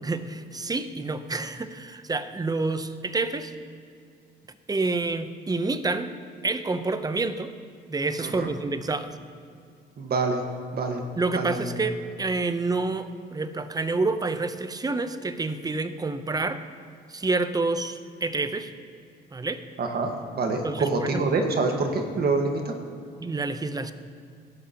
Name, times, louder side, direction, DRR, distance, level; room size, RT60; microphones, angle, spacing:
voice 1, 0.0-3.5 4.7-6.1 6.4-7.5 7.9-9.2 11.2-16.6 17.1-18.7 19.3-19.6 20.6-21.2 23.2-23.9, right 3 dB, 20° right, 11 dB, 0.6 m, -28 dB
voice 2, 10.0-10.4 10.7-11.0 11.4-11.8 19.8-20.1 20.3-22.7, right 3 dB, 50° right, 3 dB, 1.5 m, -26 dB
15.5 x 12.5 x 2.9 m, 2.4 s
cardioid pair, 90°, 20 cm